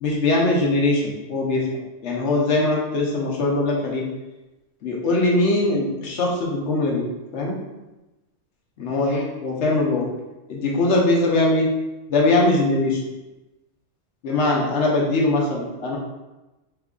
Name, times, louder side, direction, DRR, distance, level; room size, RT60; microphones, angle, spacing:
voice 1, 0.0-1.7 2.0-4.1 4.8-7.0 7.3-7.6 8.8-10.1 10.5-11.7 12.1-13.0 14.2-16.0, left 2 dB, 85° left, -2 dB, 1.1 m, -21 dB
3.6 x 3.3 x 2.4 m, 1.0 s
omnidirectional pair, 1.2 m